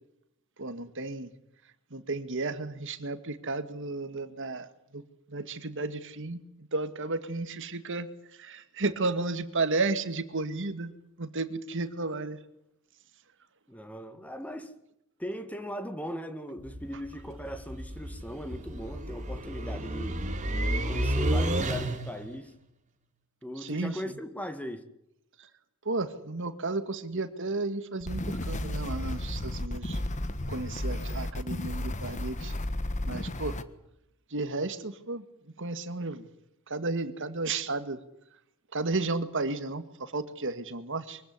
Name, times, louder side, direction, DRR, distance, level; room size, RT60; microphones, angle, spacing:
voice 1, 0.6-1.3 1.9-5.0 5.3-10.9 11.2-12.4 23.6-24.0 25.4-25.5 25.8-30.0 30.5-32.5 33.0-33.6 34.3-35.3 35.6-36.3 36.7-38.0 38.7-41.2, right 3 dB, 60° right, 1.9 m, -33 dB
voice 2, 13.7-14.7 15.2-20.2 20.9-22.5 23.4-24.8, equal, 5° left, 2.0 m, -38 dB
sound 1, 16.6-22.3, right 1 dB, 35° right, 2.5 m, -31 dB
sound 2, 28.0-33.6, left 1 dB, 35° left, 1.4 m, -33 dB
24.0 x 16.0 x 9.7 m
head